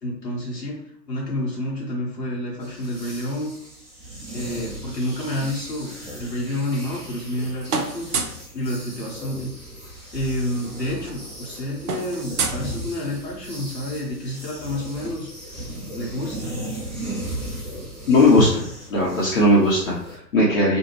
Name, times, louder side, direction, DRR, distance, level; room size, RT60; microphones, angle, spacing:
voice 1, 0.0-3.5 4.3-8.1 8.5-9.5 10.1-15.3 15.9-16.6, left 1 dB, 75° left, -4 dB, 0.9 m, -29 dB
sound 1, 2.6-20.2, right 1 dB, 5° right, 0.7 m, -37 dB
sound 2, 6.6-7.4 7.7-8.5 9.9-10.0 10.2-10.4 10.7-13.3, right 5 dB, 65° right, 0.6 m, -30 dB
voice 2, 18.1-18.6 18.9-20.8, left 1 dB, 55° left, -6 dB, 0.8 m, -18 dB
2.6 x 2.2 x 3.0 m, 0.68 s
figure-of-eight pair, 120°, 50 cm